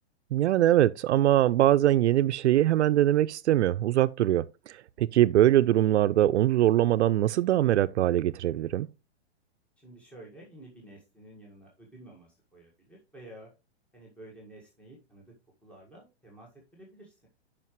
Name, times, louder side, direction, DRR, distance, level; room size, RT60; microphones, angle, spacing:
voice 1, 0.3-8.9, right 13 dB, 80° right, 0.5 m, -22 dB
voice 2, 9.8-13.5 13.9-15.3 15.6-17.3, right 1 dB, 5° left, 1.7 m, -51 dB
11.0 x 5.1 x 3.1 m
hypercardioid pair, 140°, 33 cm